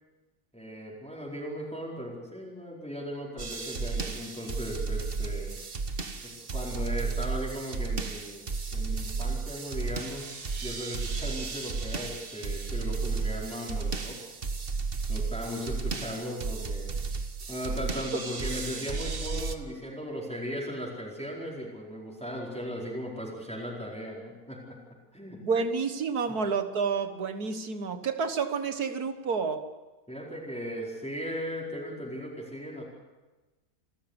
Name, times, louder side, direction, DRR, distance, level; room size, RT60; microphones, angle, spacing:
voice 1, 0.5-5.6 6.2-14.2 15.1-17.0 17.5-24.8 25.1-25.4 30.1-32.8, equal, 5° left, -4 dB, 4.6 m, -37 dB
sound 1, 3.4-19.6, right 4 dB, 40° right, 1.4 m, -33 dB
voice 2, 25.4-29.7, right 5 dB, 85° right, 8 dB, 2.1 m, -29 dB
28.5 x 13.0 x 8.2 m, 1.2 s
omnidirectional pair, 1.6 m